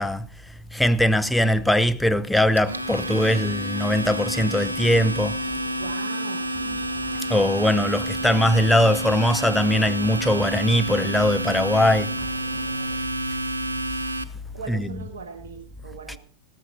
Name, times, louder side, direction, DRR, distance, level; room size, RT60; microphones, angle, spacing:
voice 1, 0.0-5.4 7.3-12.3 14.7-15.1 16.1-16.2, left 1 dB, 5° left, 0.7 m, -21 dB
Domestic sounds home sounds, 2.4-14.2, right 1 dB, 80° right, 0.7 m, -29 dB
sound 1, 2.5-13.0, right 6 dB, 45° right, 5.3 m, -44 dB
voice 2, 5.8-6.5 14.5-16.2, right 6 dB, 60° right, 1.4 m, -38 dB
14.5 x 13.5 x 4.1 m
figure-of-eight pair, 90°, 0 cm